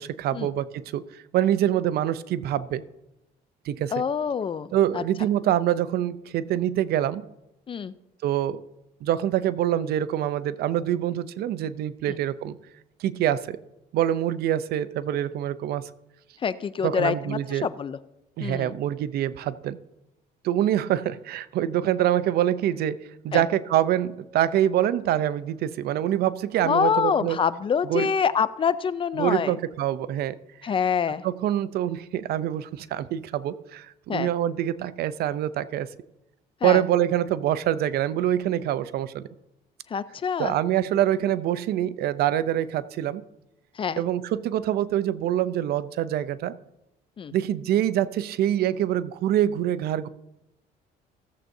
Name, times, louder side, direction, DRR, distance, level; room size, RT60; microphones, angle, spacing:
voice 1, 0.0-2.8 3.7-4.0 4.7-7.2 8.2-8.6 9.0-12.6 13.0-13.6 13.9-15.9 16.8-17.7 18.4-19.8 20.4-23.0 23.2-27.4 27.8-28.1 29.2-30.4 31.2-35.9 36.6-39.3 40.4-43.2 44.0-46.5 47.3-50.1, right 11 dB, 70° right, 15 dB, 0.5 m, -25 dB
voice 2, 3.9-4.7 4.9-5.0 7.7-7.9 12.1-12.2 16.4-18.0 18.4-18.7 23.3-23.4 26.6-29.5 30.6-31.2 34.1-34.3 36.6-36.8 39.9-40.5 43.8-44.0 47.2-47.3, left 7 dB, 30° left, 15 dB, 0.4 m, -26 dB
16.0 x 7.6 x 2.7 m, 0.88 s
cardioid pair, 110°, 17 cm